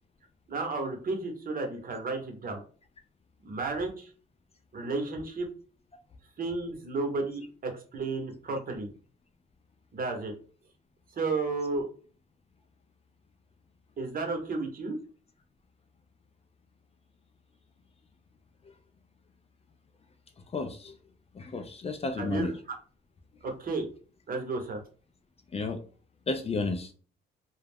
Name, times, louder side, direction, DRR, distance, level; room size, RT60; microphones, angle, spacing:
voice 1, 0.5-2.6 3.4-4.1 4.7-5.5 6.4-8.9 9.9-10.3 11.2-11.9 14.0-15.0 22.2-22.6 23.4-23.9 24.3-24.8, right 3 dB, 45° right, 3 dB, 0.8 m, -32 dB
voice 2, 20.5-21.0 21.3-22.5 25.5-25.8 26.3-26.9, left 3 dB, 30° left, 6 dB, 0.4 m, -32 dB
2.3 x 2.0 x 3.4 m, 0.39 s
cardioid pair, 90°, 20 cm